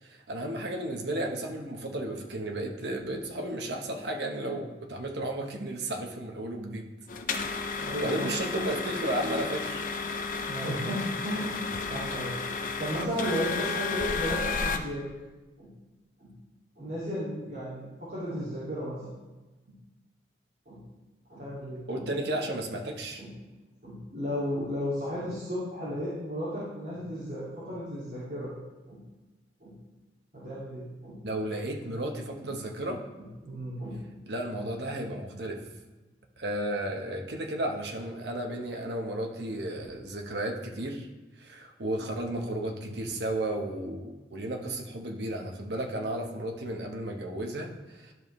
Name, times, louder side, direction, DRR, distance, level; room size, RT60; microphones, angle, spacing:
voice 1, 0.0-6.8 7.7-9.8 21.9-23.2 31.2-33.0 33.9-35.6 36.4-41.1 41.4-48.1, right 1 dB, 70° right, 2 dB, 1.0 m, -33 dB
sound 1, 7.1-14.8, left 4 dB, 45° left, 0.5 m, -32 dB
voice 2, 7.7-8.3 10.5-15.0 15.6-15.7 16.2-16.3 16.8-19.1 19.7-19.8 20.7-20.8 21.3-22.0 23.2-23.3 23.8-28.5 28.9-29.0 29.6-29.8 30.3-31.2 32.4-32.5 33.2-34.0, equal, 50° right, -10 dB, 2.3 m, -34 dB
12.0 x 5.3 x 3.1 m, 1.2 s
head